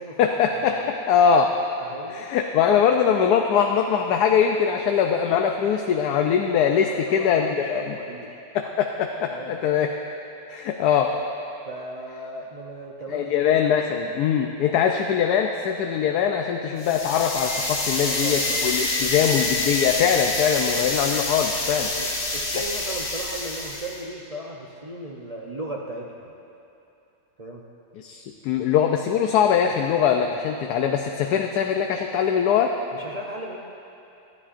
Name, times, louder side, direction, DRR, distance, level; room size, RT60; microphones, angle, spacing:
voice 1, 0.2-1.5 2.1-8.0 8.5-9.9 10.5-11.1 13.1-21.9 28.0-32.7, left 7 dB, 75° left, 3 dB, 1.1 m, -22 dB
voice 2, 1.9-2.3 6.6-8.4 9.3-9.6 11.7-14.1 18.1-19.1 21.8-22.1 22.3-26.4 27.4-27.6 32.9-33.6, right 1 dB, 50° right, -2 dB, 0.4 m, -37 dB
sound 1, 16.8-24.0, left 2 dB, 45° left, 1.5 m, -27 dB
24.5 x 9.9 x 2.5 m, 2.8 s
omnidirectional pair, 1.7 m